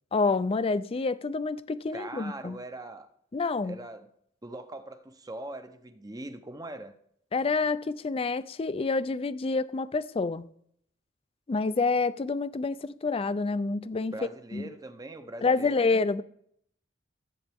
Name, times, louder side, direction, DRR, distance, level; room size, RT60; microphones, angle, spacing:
voice 1, 0.1-2.6 3.3-3.8 7.3-10.4 11.5-14.1 14.5-14.6 15.4-16.2, left 4 dB, 30° left, 0.4 m, -28 dB
voice 2, 1.9-3.1 3.6-4.1 4.4-6.9 14.1-15.9, right 2 dB, 20° right, 0.7 m, -41 dB
14.0 x 8.5 x 3.5 m
head